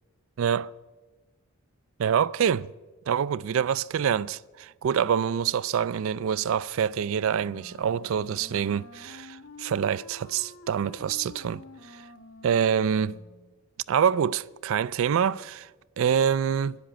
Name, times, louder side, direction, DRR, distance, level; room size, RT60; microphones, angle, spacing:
voice 1, 0.4-0.7 2.0-2.7 3.1-11.6 11.9-12.0 12.4-13.2 13.9-15.7 16.0-16.8, right 8 dB, 70° right, 0.3 m, -26 dB
Wind instrument woodwind instrument, 7.3-13.6, left 3 dB, 80° left, 0.9 m, -49 dB
10.5 x 10.0 x 7.7 m
head